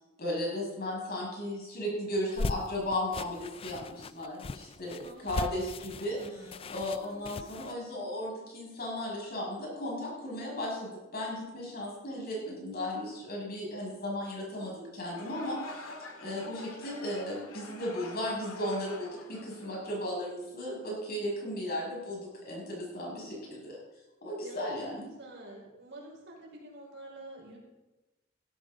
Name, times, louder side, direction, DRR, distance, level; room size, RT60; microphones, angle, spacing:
voice 1, 0.2-6.2 6.7-15.9 16.2-23.8 24.2-25.0, left 1 dB, 50° left, -3 dB, 6.3 m, -35 dB
sound 1, 2.2-7.7, left 3 dB, 30° left, 0.3 m, -38 dB
voice 2, 5.0-5.4 5.9-6.7 7.0-7.5 24.4-27.6, right 1 dB, 60° right, -2 dB, 4.6 m, -49 dB
sound 2, 15.0-20.3, left 3 dB, 90° left, 2.0 m, -46 dB
16.0 x 13.0 x 3.9 m, 1.0 s
head